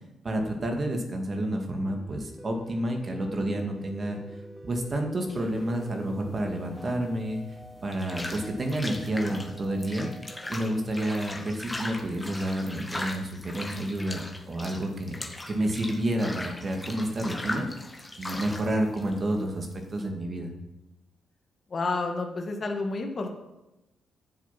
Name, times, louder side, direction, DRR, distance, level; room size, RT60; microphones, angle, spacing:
voice 1, 0.2-4.2 4.6-7.4 7.8-10.1 10.5-15.2 15.5-17.7 18.2-20.5, right 1 dB, 40° right, 3 dB, 2.1 m, -29 dB
sound 1, 1.8-12.2, equal, 5° right, 1.8 m, -47 dB
sound 2, 5.3-20.1, left 2 dB, 15° left, 1.6 m, -39 dB
voice 2, 21.7-23.3, left 3 dB, 45° left, 3 dB, 1.9 m, -30 dB
9.9 x 7.4 x 5.9 m, 0.97 s
supercardioid pair, 60°, 0 cm